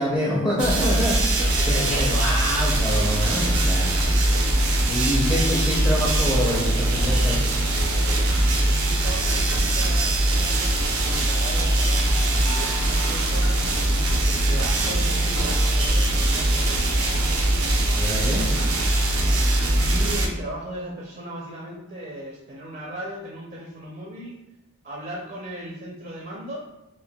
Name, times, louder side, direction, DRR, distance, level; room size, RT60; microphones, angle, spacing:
voice 1, 0.0-1.4 1.7-4.1 4.9-7.4 17.9-18.5, equal, 20° left, -6 dB, 0.6 m, -26 dB
sound 1, 0.6-20.3, right 1 dB, 90° right, 0.6 m, -21 dB
voice 2, 1.1-1.7 8.7-10.7 11.1-13.6 14.2-17.0 19.8-24.4 24.8-26.6, right 1 dB, 40° right, -3 dB, 0.5 m, -37 dB
5.6 x 2.2 x 2.2 m, 0.99 s
head